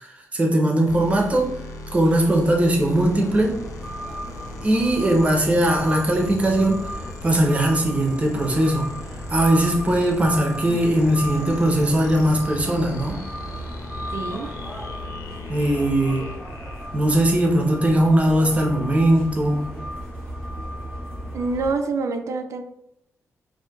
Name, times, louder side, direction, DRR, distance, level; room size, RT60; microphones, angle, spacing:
voice 1, 0.0-1.6 1.9-3.6 4.6-6.9 7.2-8.9 9.3-13.2 15.5-16.3 16.9-19.7, right 1 dB, 25° right, 1 dB, 0.7 m, -20 dB
sound 1, 0.8-17.3, left 2 dB, 90° left, 0.5 m, -40 dB
sound 2, 2.9-21.7, equal, 15° left, 1.3 m, -34 dB
voice 2, 14.1-14.5 21.3-22.6, right 4 dB, 65° right, 6 dB, 0.4 m, -26 dB
4.3 x 2.6 x 2.2 m, 0.77 s
wide cardioid pair, 145°, 5 cm